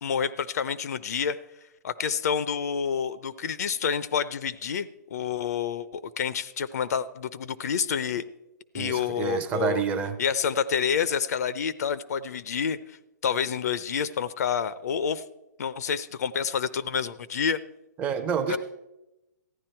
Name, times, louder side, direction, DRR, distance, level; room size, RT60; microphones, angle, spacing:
voice 1, 0.0-1.4 1.8-8.2 8.7-9.8 10.2-12.8 13.2-15.2 15.6-17.6 18.5-18.6, left 7 dB, 60° left, 16 dB, 0.6 m, -28 dB
voice 2, 8.7-10.2 18.0-18.6, right 7 dB, 15° right, 8 dB, 0.6 m, -28 dB
14.5 x 10.0 x 4.4 m, 0.95 s
hypercardioid pair, 160°, 10 cm